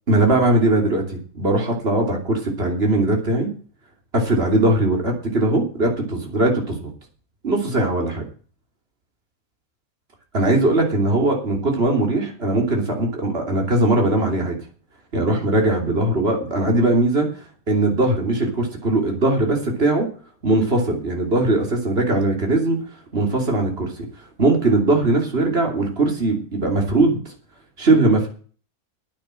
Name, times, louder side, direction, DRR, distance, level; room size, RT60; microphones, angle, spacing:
voice 1, 0.1-3.5 4.1-6.8 7.4-8.2 10.3-14.6 15.1-17.3 17.7-20.1 20.4-22.8 23.1-23.9 24.4-27.2 27.8-28.3, right 2 dB, 45° right, 1 dB, 3.2 m, -20 dB
9.8 x 8.7 x 7.6 m, 0.42 s
omnidirectional pair, 1.5 m